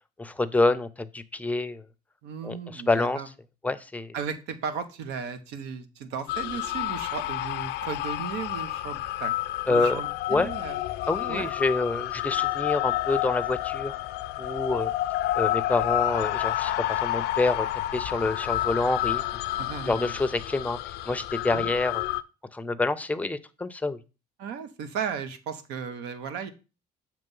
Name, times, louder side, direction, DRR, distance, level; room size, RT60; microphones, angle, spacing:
voice 1, 0.2-1.8 2.4-3.2 3.6-4.1 9.7-10.0 10.3-10.5 11.1-14.0 14.4-14.9 15.3-17.7 17.9-19.2 19.8-20.8 21.0-22.1 22.5-24.0, left 2 dB, 10° left, 12 dB, 0.5 m, -27 dB
voice 2, 2.2-3.3 4.1-9.3 9.7-10.8 11.3-11.5 19.6-20.1 21.5-21.7 24.4-26.5, right 6 dB, 90° right, 11 dB, 0.9 m, -35 dB
sound 1, 6.3-22.2, left 15 dB, 85° left, 0.4 m, -29 dB
6.8 x 3.1 x 5.3 m, 0.31 s
cardioid pair, 110°, 17 cm